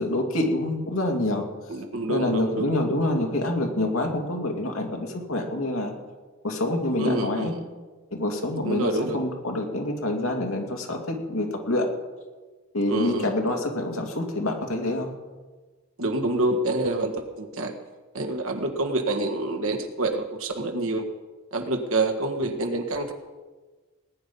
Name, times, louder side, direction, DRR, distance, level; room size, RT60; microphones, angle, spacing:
voice 1, 0.0-1.5 2.1-5.9 6.4-7.5 8.1-11.9 12.7-15.1, left 1 dB, 70° left, 2 dB, 2.4 m, -26 dB
voice 2, 1.7-2.7 7.0-7.6 8.6-9.2 12.9-13.3 16.0-17.7 18.1-21.0 21.5-23.1, right 2 dB, 70° right, 5 dB, 1.7 m, -27 dB
19.0 x 10.0 x 5.5 m, 1.3 s
head